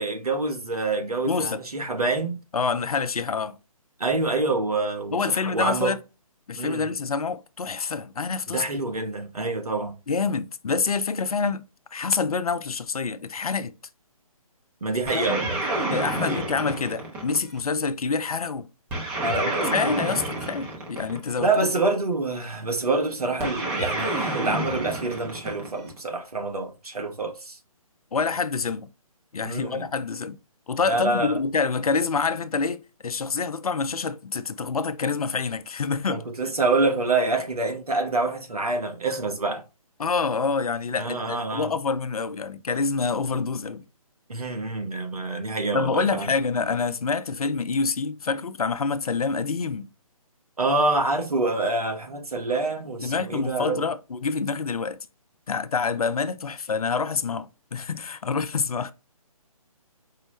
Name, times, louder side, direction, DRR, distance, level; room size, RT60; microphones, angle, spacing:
voice 1, 0.0-2.4 4.0-5.9 6.6-6.9 8.5-9.9 14.8-15.9 16.2-16.4 19.2-19.8 21.4-27.6 29.4-29.9 30.9-31.4 36.1-39.6 41.0-41.7 44.3-46.3 50.6-53.8, right 3 dB, 80° right, 1.1 m, -26 dB
voice 2, 1.2-1.6 2.5-3.6 5.1-6.0 6.5-8.9 10.1-11.6 11.9-13.7 15.1-15.4 15.9-18.7 19.4-21.8 28.1-28.9 29.3-30.4 30.7-36.2 40.0-43.8 45.7-49.9 53.0-55.0 55.5-58.9, left 4 dB, 75° left, 0.4 m, -27 dB
sound 1, 15.0-17.7 18.9-21.5 23.4-26.0, right 2 dB, 10° right, 0.5 m, -29 dB
4.7 x 2.0 x 3.1 m
figure-of-eight pair, 145°, 19 cm